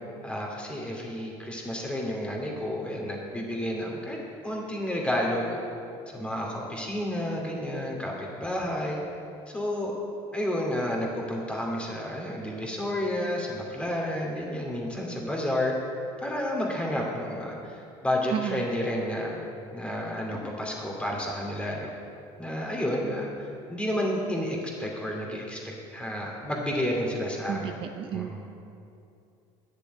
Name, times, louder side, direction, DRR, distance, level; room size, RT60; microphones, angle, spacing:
voice 1, 0.2-4.2 4.4-5.6 6.1-9.0 9.5-9.9 10.3-15.7 16.2-19.4 19.7-21.9 22.4-25.6 25.9-27.8 28.1-28.4, left 1 dB, 10° left, -1 dB, 2.5 m, -31 dB
voice 2, 18.3-18.7 27.5-28.4, right 9 dB, 45° right, 7 dB, 0.6 m, -32 dB
11.0 x 6.7 x 9.4 m, 2.6 s
cardioid pair, 130°, 12 cm